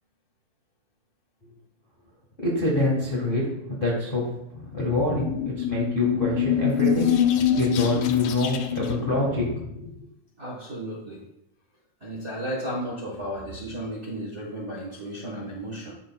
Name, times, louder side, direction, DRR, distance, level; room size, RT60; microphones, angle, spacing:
voice 1, 2.4-4.2 4.7-7.1 7.6-9.4 9.7-9.9, left 1 dB, 65° left, -4 dB, 0.5 m, -26 dB
sound 1, 4.6-10.0, left 9 dB, 85° left, 1.4 m, -25 dB
voice 2, 10.4-11.2 12.0-15.9, right 1 dB, 55° right, -5 dB, 0.7 m, -34 dB
12.5 x 4.3 x 2.2 m, 0.83 s
omnidirectional pair, 3.5 m